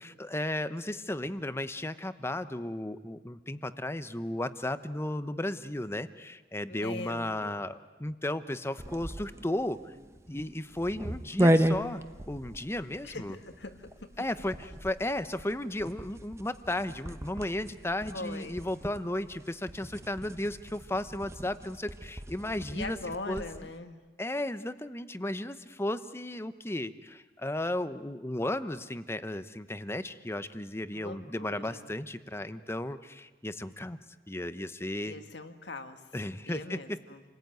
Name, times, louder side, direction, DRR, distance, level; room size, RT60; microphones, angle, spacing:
voice 1, 0.0-9.9 10.3-13.4 14.2-23.0 23.3-23.4 24.2-34.0 34.3-35.2 36.1-37.0, left 1 dB, 15° left, 12 dB, 0.8 m, -34 dB
voice 2, 6.7-7.7 13.0-14.1 18.1-18.6 22.7-24.0 30.9-31.9 35.0-36.0 36.5-37.2, left 2 dB, 75° left, 7 dB, 1.9 m, -41 dB
sound 1, 8.8-23.7, equal, 15° right, 1.0 m, -34 dB
29.0 x 20.0 x 9.3 m, 1.3 s
head